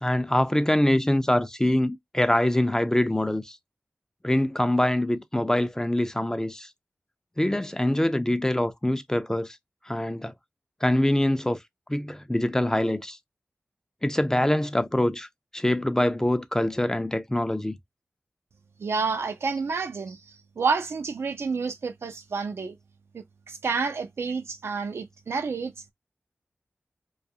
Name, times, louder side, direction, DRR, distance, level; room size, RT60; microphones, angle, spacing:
voice 1, 0.0-3.6 4.2-6.7 7.4-9.6 9.9-10.3 10.8-11.6 11.9-13.2 14.0-15.3 15.5-17.8, left 1 dB, 15° left, 0.4 m, -24 dB
voice 2, 18.8-22.8 23.1-25.7, right 4 dB, 80° right, 0.4 m, -29 dB
2.3 x 2.3 x 2.6 m
wide cardioid pair, 55°, 4 cm